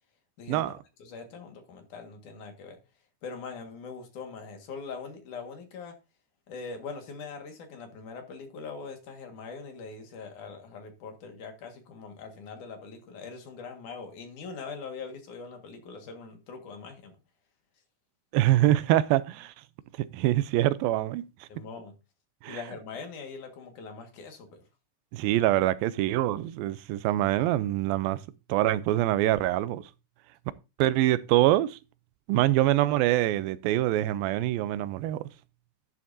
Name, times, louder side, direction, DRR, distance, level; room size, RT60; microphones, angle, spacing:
voice 1, 0.4-0.7 1.0-2.8 3.2-6.0 6.5-17.2 21.5-21.9 22.5-24.6, left 4 dB, 65° left, 3.1 m, -42 dB
voice 2, 18.3-19.5 20.0-21.5 22.4-22.6 25.1-28.2 28.5-29.9 30.8-31.8 32.3-35.2, right 14 dB, 90° right, 2.5 m, -25 dB
11.5 x 10.5 x 2.7 m
omnidirectional pair, 4.1 m